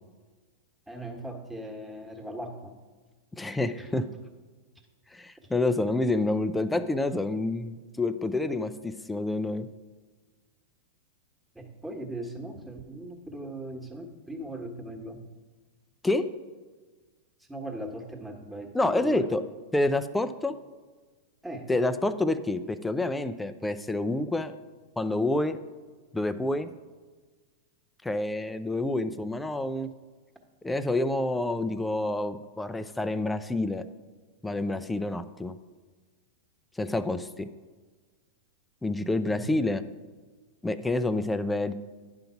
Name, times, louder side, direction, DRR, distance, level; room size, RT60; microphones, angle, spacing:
voice 1, 0.9-2.8 11.5-15.2 17.5-19.3 21.4-21.7 39.3-39.5, right 1 dB, 5° right, 2 dB, 1.4 m, -39 dB
voice 2, 3.4-4.1 5.1-9.7 16.0-16.2 18.7-19.4 19.7-20.6 21.7-24.5 25.0-25.6 26.1-26.7 28.0-29.9 30.6-33.8 34.4-35.6 36.8-37.5 38.8-39.8 40.6-41.7, left 2 dB, 10° left, 12 dB, 0.5 m, -28 dB
10.5 x 3.9 x 5.8 m, 1.4 s
hypercardioid pair, 100°, 0 cm